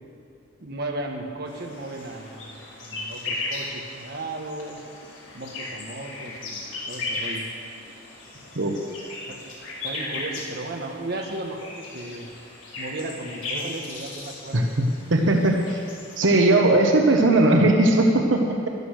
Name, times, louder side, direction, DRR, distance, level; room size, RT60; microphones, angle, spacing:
voice 1, 0.6-4.8 5.3-7.4 9.3-9.4 9.8-12.3 12.8-14.7, right 2 dB, 60° right, 2 dB, 1.4 m, -35 dB
sound 1, 1.5-16.2, left 2 dB, 90° left, 3.4 m, -36 dB
voice 2, 14.5-15.8 16.2-18.7, right 2 dB, 85° right, 2 dB, 1.0 m, -19 dB
12.0 x 12.0 x 6.5 m, 2.5 s
head